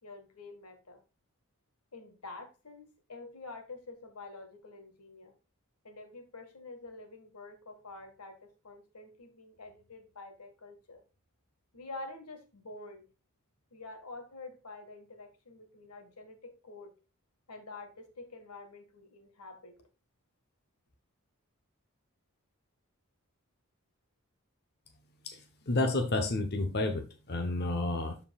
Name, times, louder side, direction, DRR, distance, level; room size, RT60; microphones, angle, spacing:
voice 1, 0.0-1.0 1.9-5.3 5.8-11.0 11.7-13.0 13.7-16.9 17.5-19.7, left 3 dB, 90° left, 6 dB, 1.8 m, -48 dB
voice 2, 25.7-28.2, left 2 dB, 50° left, 5 dB, 0.9 m, -30 dB
13.0 x 4.6 x 2.4 m, 0.32 s
head